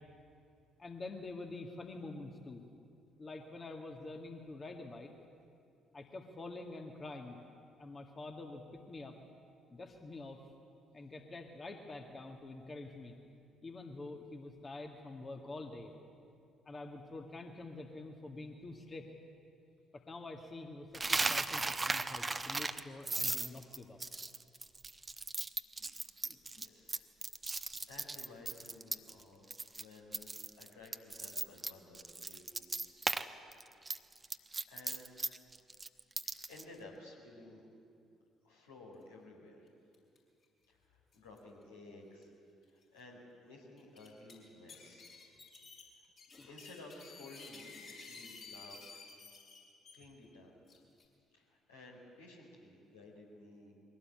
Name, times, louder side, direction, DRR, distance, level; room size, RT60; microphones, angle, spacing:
voice 1, 0.8-2.6 3.2-5.1 5.9-7.4 7.8-9.2 9.7-10.4 10.9-13.2 13.6-15.9 16.7-19.1 19.9-24.0 25.8-26.0 26.2-26.7 46.3-46.5, left 2 dB, 35° left, 3 dB, 1.9 m, -47 dB
Coin (dropping), 20.9-29.2 29.5-29.8 30.1-33.2 33.5-36.6, right 3 dB, 20° right, 0.9 m, -37 dB
voice 2, 26.5-27.3 27.8-32.4 32.8-33.1 34.7-35.1 36.5-37.6 38.4-39.7 40.7-42.3 42.7-45.1 46.4-49.0 49.9-50.5 51.3-53.7, left 2 dB, 80° left, -3 dB, 4.3 m, -55 dB
sound 1, 39.9-40.2 40.4-40.5 41.1-41.4 42.2-42.3 42.8-42.9 43.8-44.3 44.7-49.9 50.7-51.0, left 4 dB, 50° left, 5.4 m, -53 dB
22.0 x 17.5 x 8.8 m, 2.5 s
figure-of-eight pair, 45°, 0 cm